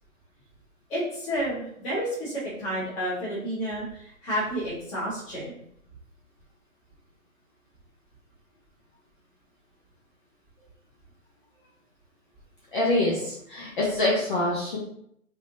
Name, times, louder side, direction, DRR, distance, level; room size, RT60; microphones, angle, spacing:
voice 1, 0.9-5.6, equal, 15° left, -8 dB, 1.2 m, -30 dB
voice 2, 12.7-14.8, left 1 dB, 35° left, -5 dB, 0.9 m, -25 dB
3.6 x 3.3 x 2.7 m, 0.69 s
hypercardioid pair, 155°, 43 cm